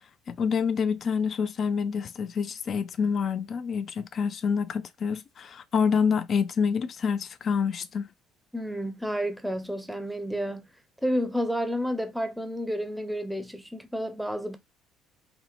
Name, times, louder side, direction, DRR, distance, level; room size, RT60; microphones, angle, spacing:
voice 1, 0.3-8.1, left 6 dB, 45° left, 0.3 m, -27 dB
voice 2, 8.5-10.7 11.0-14.6, equal, 5° right, 0.6 m, -30 dB
2.9 x 2.0 x 2.4 m
hypercardioid pair, 60°, 0 cm